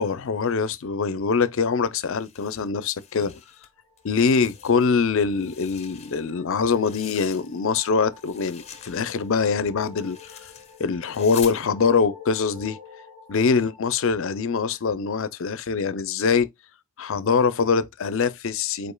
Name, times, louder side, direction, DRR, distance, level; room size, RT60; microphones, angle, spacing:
voice 1, 0.0-3.4 4.0-10.4 10.8-12.8 13.3-16.5 17.0-18.9, left 5 dB, 65° left, 0.5 m, -23 dB
sound 1, 2.0-3.7 4.0-5.0 5.3-7.8 8.1-11.6, left 8 dB, 30° left, 0.8 m, -44 dB
sound 2, 3.5-14.9, left 5 dB, 75° right, 3.0 m, -48 dB
5.1 x 4.4 x 2.2 m
head